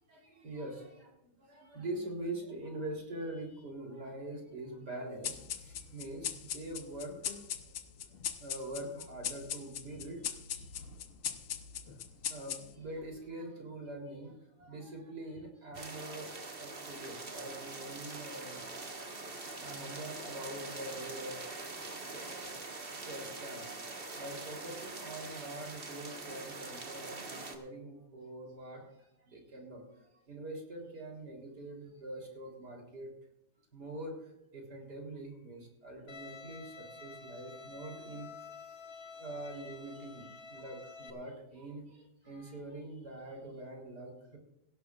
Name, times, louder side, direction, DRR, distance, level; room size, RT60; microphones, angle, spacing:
voice 1, 0.1-7.4 7.6-10.7 12.3-21.8 22.1-22.6 23.0-33.1 33.7-44.4, right 1 dB, 30° right, 1 dB, 3.8 m, -44 dB
sound 1, 5.2-13.0, left 9 dB, 80° left, 1.0 m, -40 dB
sound 2, 15.7-27.6, right 3 dB, 65° right, 0.5 m, -44 dB
Bowed string instrument, 36.1-41.1, left 4 dB, 40° left, 1.3 m, -50 dB
18.0 x 17.0 x 2.4 m, 0.87 s
omnidirectional pair, 3.5 m